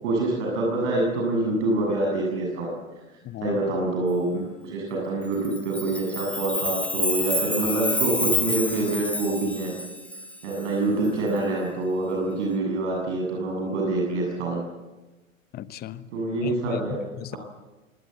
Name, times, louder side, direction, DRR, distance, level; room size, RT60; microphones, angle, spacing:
voice 1, 0.0-2.7 3.4-9.7 10.1-14.6 16.1-17.0 17.3-17.4, right 2 dB, 60° right, 7.5 m, -26 dB
voice 2, 3.2-3.6 15.5-16.1 16.4-16.8 17.2-17.4, left 12 dB, 25° left, 1.0 m, -36 dB
Chime, 5.4-10.6, left 2 dB, 5° left, 2.0 m, -28 dB
25.5 x 19.0 x 7.9 m
hypercardioid pair, 105°, 40 cm